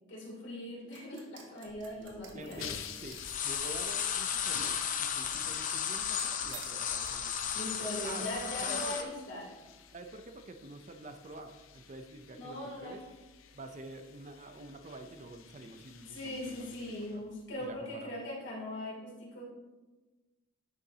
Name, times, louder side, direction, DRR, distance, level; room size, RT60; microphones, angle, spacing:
voice 1, 0.1-2.7 7.5-9.5 12.3-13.0 16.1-19.4, left 1 dB, 60° left, -4 dB, 2.8 m, -40 dB
sound 1, 0.9-7.7, right 6 dB, 60° right, 1.3 m, -53 dB
sound 2, 1.8-1.9 2.1-2.8 3.0-9.0, left 8 dB, 40° left, 0.6 m, -34 dB
voice 2, 2.3-3.2 3.4-8.3 8.6-9.2 9.9-13.0 13.5-17.2 17.6-18.2, right 2 dB, 35° right, 7 dB, 0.5 m, -48 dB
sound 3, 2.4-17.8, left 8 dB, 85° left, 0.6 m, -51 dB
10.5 x 7.0 x 2.8 m, 1.2 s
head